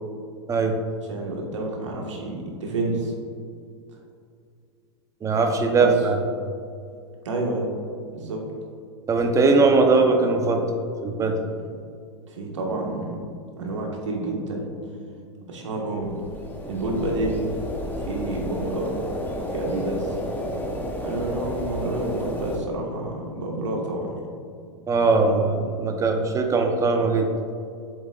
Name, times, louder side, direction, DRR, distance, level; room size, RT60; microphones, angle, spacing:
voice 1, 1.1-3.1 5.8-5.9 7.3-7.7 8.1-8.4 12.3-13.2 13.6-14.7 15.5-16.2 16.7-17.4 18.1-19.0 19.5-20.2 21.0-24.1, right 2 dB, 80° right, -1 dB, 1.7 m, -29 dB
voice 2, 5.2-6.2 9.1-10.6 11.0-11.4 24.9-27.3, right 3 dB, 20° right, 4 dB, 0.9 m, -20 dB
sound 1, 16.0-22.6, left 1 dB, 10° left, 1.0 m, -32 dB
7.7 x 7.4 x 2.5 m, 2.4 s
hypercardioid pair, 110°, 15 cm